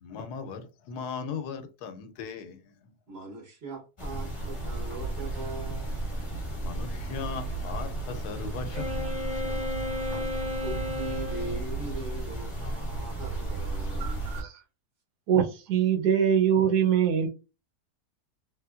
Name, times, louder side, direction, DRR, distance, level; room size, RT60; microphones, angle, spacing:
voice 1, 0.0-2.6 6.6-9.2 9.6-9.7, left 5 dB, 80° left, 1.1 m, -38 dB
voice 2, 3.1-6.2 10.0-14.1, right 3 dB, 45° right, 1.0 m, -41 dB
sound 1, 4.0-14.4, right 2 dB, 25° left, 0.8 m, -34 dB
Wind instrument woodwind instrument, 8.7-11.6, left 2 dB, 5° right, 1.0 m, -34 dB
voice 3, 14.0-14.5 15.3-17.3, right 8 dB, 80° right, 1.2 m, -23 dB
3.1 x 2.8 x 2.3 m
omnidirectional pair, 1.7 m